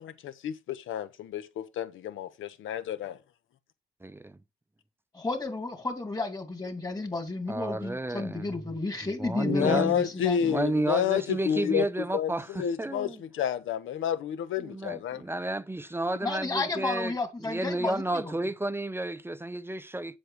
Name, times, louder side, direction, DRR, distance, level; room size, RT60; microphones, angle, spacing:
voice 1, 0.0-3.2 9.4-11.8 12.1-15.2, left 9 dB, 80° left, 1.3 m, -30 dB
voice 2, 4.0-4.4 7.5-8.6 9.0-10.0 10.4-13.2 14.6-17.1 17.4-20.2, right 1 dB, 10° right, 0.6 m, -31 dB
voice 3, 5.1-10.4 16.2-18.3, left 3 dB, 20° left, 2.6 m, -32 dB
7.7 x 7.1 x 5.3 m
cardioid pair, 90°, 20 cm